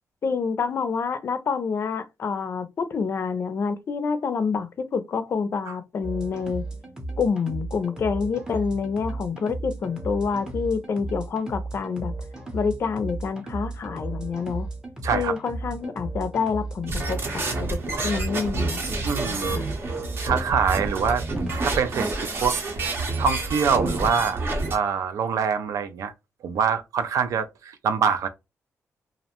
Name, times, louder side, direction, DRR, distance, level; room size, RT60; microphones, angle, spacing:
voice 1, 0.2-6.7 7.2-12.1 12.5-14.7 15.1-17.8 18.0-18.8 19.2-19.7, left 5 dB, 50° left, 0.4 m, -27 dB
sound 1, 6.0-21.8, right 2 dB, 10° right, 0.6 m, -35 dB
voice 2, 15.0-15.4 19.0-19.6 20.2-21.2 21.6-22.1 22.4-22.6 23.2-24.4 24.7-26.1 26.4-28.3, right 6 dB, 80° right, 0.3 m, -24 dB
sound 2, 16.9-24.8, right 3 dB, 45° right, 0.7 m, -28 dB
2.4 x 2.1 x 2.8 m
wide cardioid pair, 140°, 6 cm